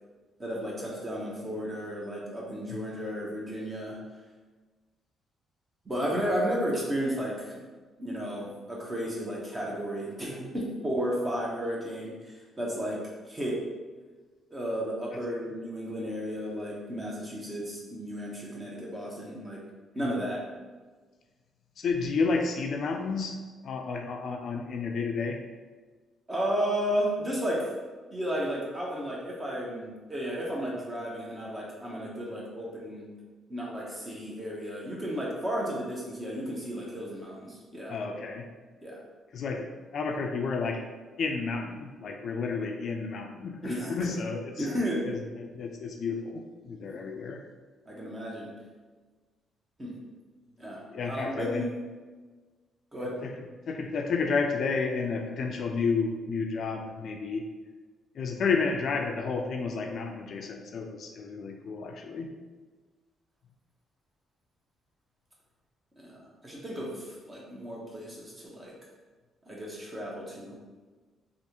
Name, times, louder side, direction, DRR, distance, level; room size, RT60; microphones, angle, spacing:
voice 1, 0.4-4.0 5.8-7.6 8.0-13.6 14.5-19.6 19.9-20.4 26.3-27.7 28.1-33.1 33.5-37.9 38.8-39.0 43.6-44.1 44.6-45.0 46.8-46.9 47.9-48.5 49.8-50.0 50.6-51.7 52.9-53.2 66.0-68.7 69.4-70.6, equal, 25° right, -4 dB, 1.0 m, -33 dB
voice 2, 21.8-25.5 37.9-38.5 39.3-40.9 41.2-44.7 45.1-47.5 50.9-51.7 53.0-57.5 58.1-62.3, left 4 dB, 60° left, 4 dB, 0.3 m, -31 dB
3.3 x 2.4 x 2.9 m, 1.3 s
cardioid pair, 90°, 0 cm